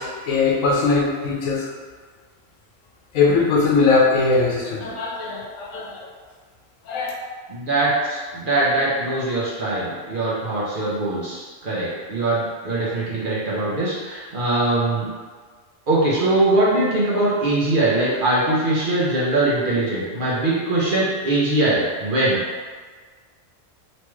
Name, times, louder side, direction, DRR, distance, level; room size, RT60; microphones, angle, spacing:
voice 1, 0.0-1.7 3.1-6.1 6.9-7.1, left 4 dB, 85° left, -2 dB, 1.0 m, -20 dB
voice 2, 7.5-15.1 15.9-22.4, right 2 dB, 50° right, -7 dB, 0.7 m, -21 dB
3.0 x 2.3 x 3.0 m, 1.5 s
omnidirectional pair, 1.3 m